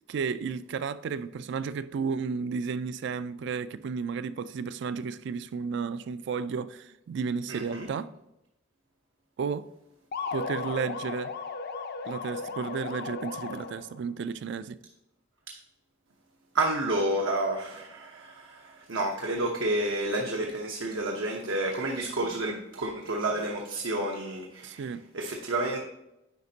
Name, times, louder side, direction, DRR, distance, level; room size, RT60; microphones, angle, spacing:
voice 1, 0.0-8.1 9.4-9.7 10.3-11.3 12.1-14.8 24.6-25.0, right 5 dB, 60° right, 0.3 m, -33 dB
voice 2, 7.5-7.9 15.5-15.6 16.5-24.8 25.1-25.8, right 1 dB, 85° right, 0.8 m, -30 dB
sound 1, 10.1-14.0, left 4 dB, 55° left, 0.5 m, -36 dB
9.3 x 5.1 x 2.8 m
head